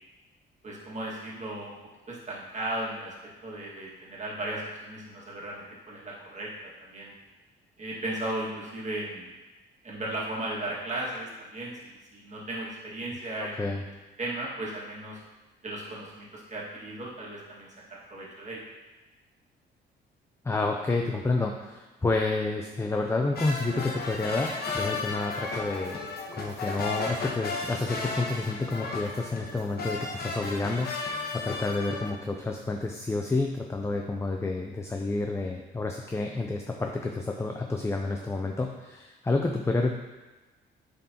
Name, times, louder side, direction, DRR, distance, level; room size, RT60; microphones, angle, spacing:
voice 1, 0.6-1.8 2.1-3.2 3.4-6.5 6.8-7.1 7.8-9.3 9.8-15.2 15.6-18.6, right 1 dB, 35° right, -5 dB, 1.9 m, -36 dB
voice 2, 20.4-26.0 26.3-39.9, left 3 dB, 15° left, 2 dB, 0.5 m, -29 dB
sound 1, 23.3-32.1, left 3 dB, 50° left, 1.1 m, -34 dB
8.7 x 3.9 x 2.9 m, 1.2 s
cardioid pair, 90°, 20 cm